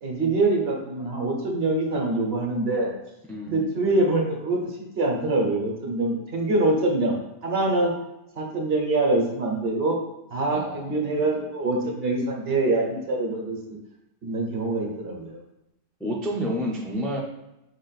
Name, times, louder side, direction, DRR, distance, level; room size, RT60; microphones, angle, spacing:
voice 1, 0.0-2.9 3.4-7.2 7.4-7.9 8.4-10.0 10.3-13.8 14.2-15.4, right 2 dB, 60° right, -1 dB, 1.2 m, -24 dB
voice 2, 3.3-4.0 10.5-11.3 16.0-17.2, equal, ahead, -2 dB, 0.4 m, -30 dB
5.0 x 2.5 x 4.0 m, 0.90 s
omnidirectional pair, 1.2 m